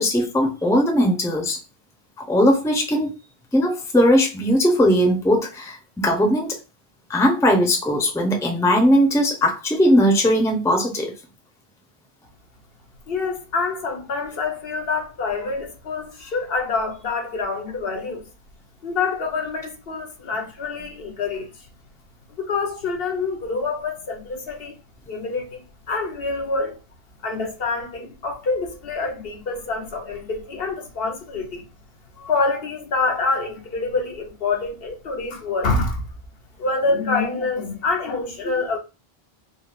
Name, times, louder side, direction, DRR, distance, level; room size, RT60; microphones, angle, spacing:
voice 1, 0.0-1.6 2.3-3.2 3.5-6.5 7.1-11.1, equal, 5° left, 0.6 m, -19 dB
voice 2, 13.1-18.3 18.8-21.7 22.4-24.8 25.1-26.8 27.2-31.6 32.2-36.1 36.6-38.8, left 3 dB, 65° left, 1.0 m, -26 dB
3.8 x 2.5 x 2.4 m
omnidirectional pair, 1.1 m